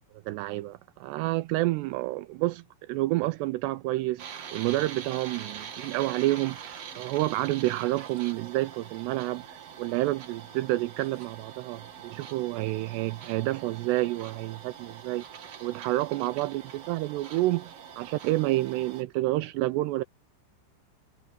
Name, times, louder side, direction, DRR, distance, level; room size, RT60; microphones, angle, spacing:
voice 1, 0.3-4.3 4.5-15.2 15.6-20.0, right 18 dB, 90° right, 2.4 m, -29 dB
sound 1, 4.2-19.0, right 8 dB, 55° right, 1.8 m, -44 dB
omnidirectional pair, 5.4 m